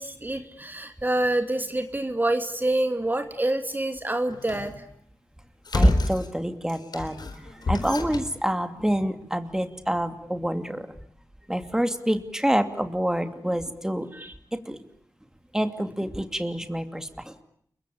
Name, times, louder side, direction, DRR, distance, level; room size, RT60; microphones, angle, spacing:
voice 1, 0.0-4.7 14.1-14.3, right 1 dB, 25° right, 7 dB, 2.4 m, -27 dB
sound 1, 4.3-4.8 5.6-6.3 6.7-8.4, left 3 dB, 75° left, 4.3 m, -31 dB
voice 2, 5.7-7.2 7.7-10.9 11.5-14.1 14.7-14.8 15.5-17.4, equal, 10° right, 8 dB, 2.7 m, -26 dB
30.0 x 23.0 x 8.6 m, 0.66 s
wide cardioid pair, 70°, 7 cm